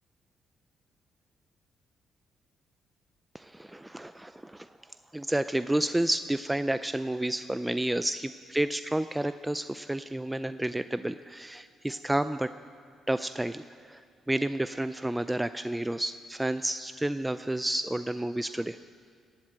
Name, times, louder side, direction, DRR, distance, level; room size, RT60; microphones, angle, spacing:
voice 1, 3.3-4.7 5.1-12.5 13.1-14.0 14.3-18.8, right 1 dB, 10° right, 12 dB, 0.4 m, -30 dB
19.5 x 7.8 x 8.8 m, 2.2 s
cardioid pair, 90°, 0 cm